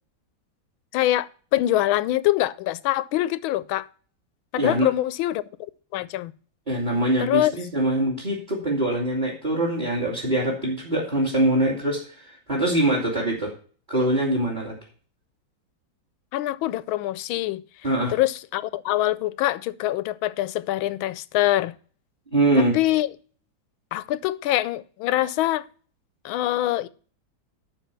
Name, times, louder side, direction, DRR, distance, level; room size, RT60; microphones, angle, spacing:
voice 1, 0.9-3.9 4.5-5.4 5.9-6.3 7.2-7.5 16.3-17.6 18.1-21.7 22.7-23.1 23.9-25.6 26.2-26.9, left 14 dB, 85° left, 1.4 m, -24 dB
voice 2, 4.6-4.9 6.7-13.5 13.9-14.8 17.8-18.1 22.3-22.8, right 1 dB, 25° right, 2.6 m, -23 dB
12.0 x 4.5 x 6.8 m
omnidirectional pair, 2.2 m